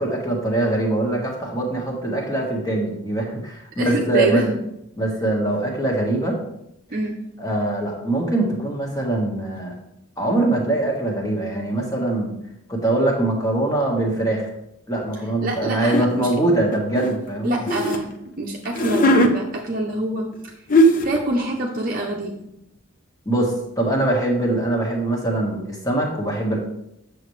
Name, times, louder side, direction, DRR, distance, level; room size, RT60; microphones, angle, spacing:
voice 1, 0.0-4.5 5.0-6.4 7.4-9.8 10.2-12.3 12.7-14.5 14.9-17.8 23.2-26.6, right 2 dB, 15° left, -1 dB, 1.5 m, -23 dB
voice 2, 3.8-4.6 6.9-7.2 15.4-16.3 17.4-18.1 18.4-20.5 21.0-22.3, right 1 dB, 45° right, -1 dB, 0.7 m, -25 dB
sound 1, 15.9-16.1 16.7-18.0 18.6-19.3 20.3-20.4 20.7-21.2, equal, 40° left, 0.7 m, -18 dB
8.5 x 6.8 x 3.2 m, 0.82 s
head